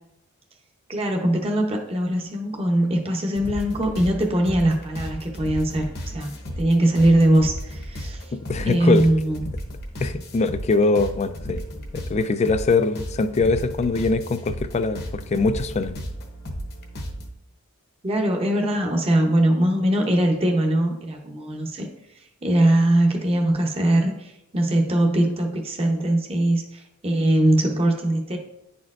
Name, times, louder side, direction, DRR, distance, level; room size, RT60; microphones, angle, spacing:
voice 1, 0.9-8.2 8.6-9.4 18.0-21.9 22.4-28.4, right 1 dB, 25° right, 2 dB, 0.7 m, -21 dB
sound 1, 3.4-17.3, equal, 50° left, 0.9 m, -34 dB
voice 2, 8.3-9.1 10.0-11.6 11.9-16.0, left 3 dB, 30° left, 11 dB, 0.3 m, -22 dB
10.0 x 4.3 x 2.4 m, 0.88 s
head